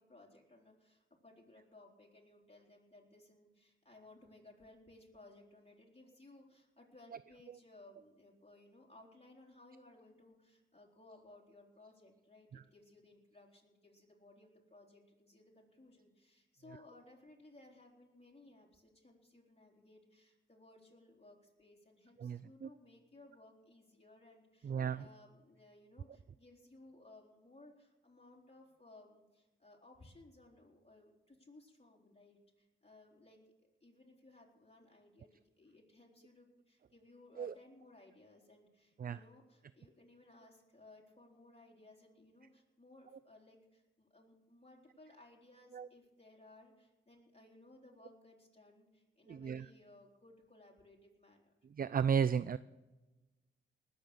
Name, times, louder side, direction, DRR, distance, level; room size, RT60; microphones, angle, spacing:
voice 1, 0.0-51.5, left 2 dB, 30° left, -1 dB, 4.0 m, -61 dB
voice 2, 22.2-22.7 24.6-25.0 37.4-37.5 39.0-39.2 45.7-45.9 49.3-49.7 51.8-52.6, right 7 dB, 45° right, 16 dB, 0.4 m, -34 dB
19.5 x 7.8 x 6.7 m, 1.1 s
cardioid pair, 75°, 20 cm